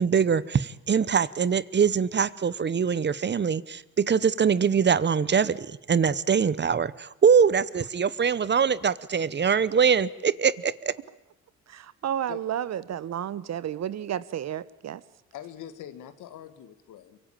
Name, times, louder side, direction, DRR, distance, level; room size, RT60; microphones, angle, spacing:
voice 1, 0.0-10.9, right 6 dB, 35° right, 1.0 m, -23 dB
voice 2, 11.7-15.0, right 10 dB, 60° right, 1.1 m, -32 dB
voice 3, 15.3-17.2, left 11 dB, 85° left, 2.1 m, -43 dB
24.0 x 23.5 x 8.9 m
cardioid pair, 90°, 30 cm